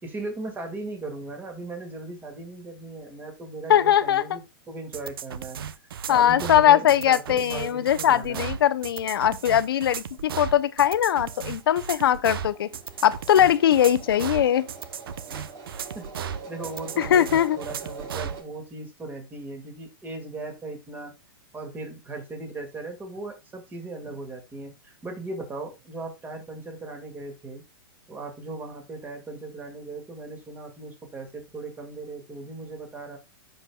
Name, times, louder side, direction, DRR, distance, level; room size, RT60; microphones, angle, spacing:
voice 1, 0.0-5.6 6.1-8.5 15.9-21.1 21.5-27.6 28.1-33.2, right 2 dB, 15° right, 2.3 m, -38 dB
voice 2, 3.7-4.4 6.1-12.7 13.0-14.7 17.0-17.6, left 10 dB, 75° left, 0.7 m, -21 dB
sound 1, 4.9-18.4, right 8 dB, 75° right, 0.8 m, -35 dB
sound 2, 9.7-9.9 10.2-10.3 10.6-18.4, right 4 dB, 50° right, 4.0 m, -44 dB
15.0 x 5.3 x 2.4 m
hypercardioid pair, 135°, 12 cm